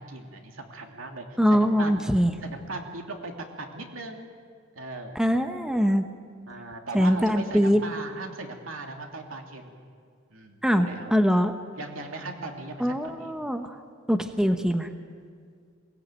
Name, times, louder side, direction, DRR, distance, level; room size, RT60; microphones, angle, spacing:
voice 1, 0.0-3.3 3.6-4.3 4.8-5.2 6.5-9.8 10.3-11.1 11.8-13.3, right 2 dB, 85° right, 2 dB, 2.9 m, -38 dB
voice 2, 1.4-2.3 5.1-6.0 6.9-7.8 10.6-11.5 12.8-13.7 14.1-14.9, equal, 5° right, 7 dB, 1.0 m, -23 dB
22.0 x 18.5 x 9.1 m, 2.1 s
head